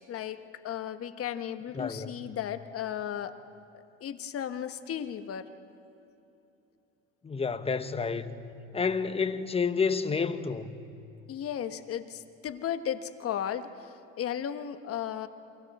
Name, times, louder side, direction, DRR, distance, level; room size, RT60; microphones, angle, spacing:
voice 1, 0.0-3.3 4.0-5.5 11.3-15.3, left 9 dB, 45° left, 1.3 m, -35 dB
voice 2, 1.7-2.2 7.2-8.4 8.7-10.9, left 5 dB, 15° left, 1.1 m, -30 dB
28.5 x 24.0 x 4.3 m
supercardioid pair, 90°, 33 cm